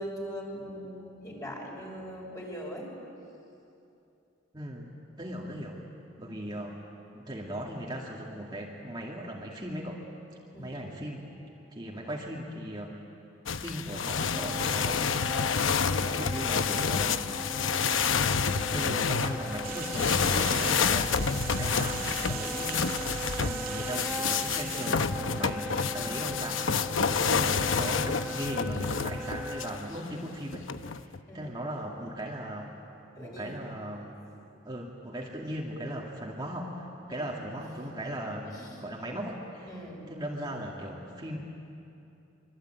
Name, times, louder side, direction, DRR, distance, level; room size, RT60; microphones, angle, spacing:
voice 1, 0.0-2.9 6.2-6.5 10.5-10.9 26.0-26.4 31.3-31.6 33.2-33.6 37.1-37.5 37.9-38.6 39.7-40.1, equal, 20° left, -1 dB, 5.8 m, -41 dB
voice 2, 4.5-5.8 6.2-10.0 10.6-11.2 11.7-13.0 13.6-15.3 15.9-17.2 17.6-18.4 18.7-32.8 33.2-34.2 34.6-39.7 40.1-41.4, equal, 25° right, -3 dB, 2.4 m, -38 dB
sound 1, 13.5-29.8 30.5-31.2, left 6 dB, 85° left, 0.8 m, -29 dB
Wind instrument woodwind instrument, 14.3-29.8, equal, 5° right, 1.4 m, -39 dB
sound 2, 19.6-24.9, right 7 dB, 50° right, 2.6 m, -39 dB
25.5 x 24.5 x 9.2 m, 2.8 s
head